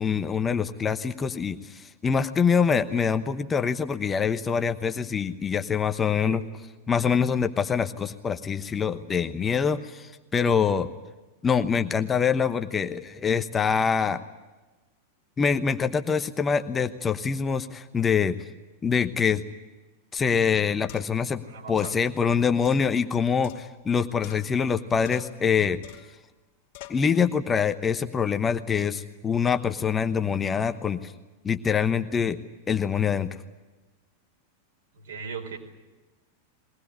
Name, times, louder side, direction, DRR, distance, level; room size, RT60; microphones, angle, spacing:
voice 1, 0.0-6.4 6.9-10.9 11.4-14.2 15.4-18.4 18.8-19.4 20.1-21.4 21.7-25.8 26.9-31.1 31.4-32.4 32.7-33.3, left 6 dB, 20° left, 8 dB, 1.0 m, -25 dB
voice 2, 6.2-6.5 21.4-22.0 34.9-35.6, right 5 dB, 65° right, 2 dB, 4.6 m, -39 dB
sound 1, 20.2-20.3 20.9-21.3 21.8-22.0 22.6-23.9 24.2-24.8 25.0-25.4 25.8-26.2 26.7-27.1, left 13 dB, 50° left, 2.6 m, -46 dB
22.5 x 19.0 x 9.9 m, 1.2 s
figure-of-eight pair, 90°, 0 cm